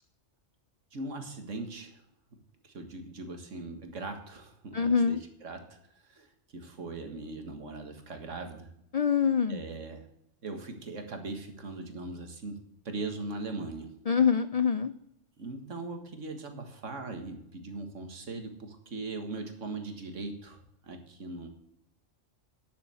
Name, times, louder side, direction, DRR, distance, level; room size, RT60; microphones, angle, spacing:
voice 1, 0.9-2.0 2.6-5.6 5.9-6.3 6.5-8.7 9.5-10.1 10.4-12.6 12.9-13.9 15.4-21.5, right 3 dB, 80° right, 5 dB, 2.0 m, -40 dB
voice 2, 4.7-5.2 8.9-9.6 14.1-14.9, left 6 dB, 65° left, 12 dB, 0.3 m, -25 dB
10.5 x 6.9 x 7.6 m, 0.76 s
omnidirectional pair, 1.3 m